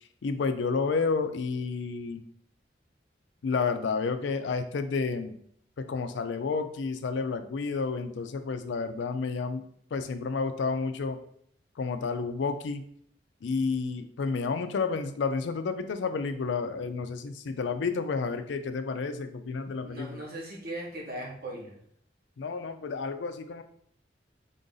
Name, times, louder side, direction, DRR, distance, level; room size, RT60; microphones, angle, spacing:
voice 1, 0.2-2.2 3.4-5.3 5.8-9.6 9.9-11.2 11.8-12.8 13.4-20.2 22.4-23.6, left 4 dB, 80° left, 9 dB, 0.4 m, -30 dB
voice 2, 19.8-21.8, right 1 dB, 55° right, -3 dB, 1.1 m, -39 dB
3.7 x 2.6 x 3.8 m, 0.65 s
head